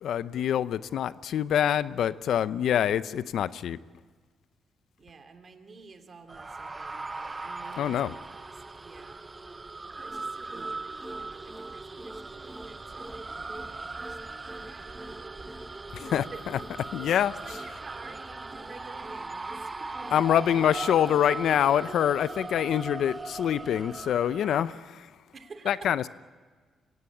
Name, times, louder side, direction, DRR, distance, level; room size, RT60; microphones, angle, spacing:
voice 1, 0.0-3.8 7.8-8.1 15.9-16.2 16.9-17.3 20.1-25.1 25.7-26.1, left 10 dB, 75° left, 16 dB, 0.6 m, -25 dB
voice 2, 5.0-9.2 9.8-15.6 16.0-16.4 17.0-20.3 25.3-26.1, right 4 dB, 45° right, 6 dB, 2.8 m, -50 dB
sound 1, 6.3-24.7, right 3 dB, 25° right, 0.6 m, -39 dB
sound 2, 10.0-21.8, right 1 dB, 10° right, 1.1 m, -47 dB
23.5 x 17.5 x 8.5 m, 1.5 s
cardioid pair, 85°, 0 cm